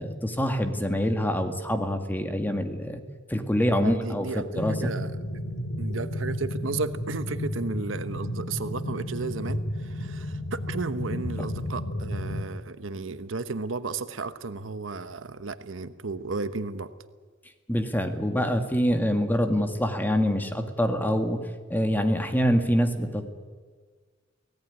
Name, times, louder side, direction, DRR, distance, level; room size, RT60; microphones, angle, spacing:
voice 1, 0.0-3.0 3.3-4.9 17.7-21.4 21.7-23.3, equal, 10° left, 6 dB, 1.9 m, -25 dB
voice 2, 3.8-5.1 5.8-16.9, right 3 dB, 75° right, 11 dB, 1.1 m, -34 dB
sound 1, 4.6-12.4, left 1 dB, 70° left, 1.9 m, -32 dB
24.5 x 18.0 x 9.8 m, 1.5 s
head